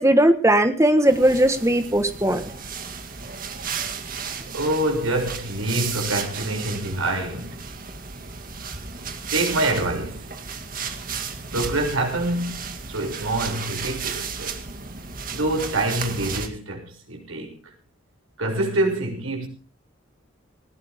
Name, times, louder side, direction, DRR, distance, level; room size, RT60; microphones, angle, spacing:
voice 1, 0.0-2.4, right 1 dB, 15° right, 1.5 m, -18 dB
sound 1, 1.0-16.5, right 5 dB, 40° right, 2.1 m, -34 dB
voice 2, 4.5-7.6 9.3-10.3 11.5-14.5 15.3-17.6 18.4-19.5, right 1 dB, 80° right, 6.8 m, -26 dB
19.5 x 18.0 x 3.7 m
head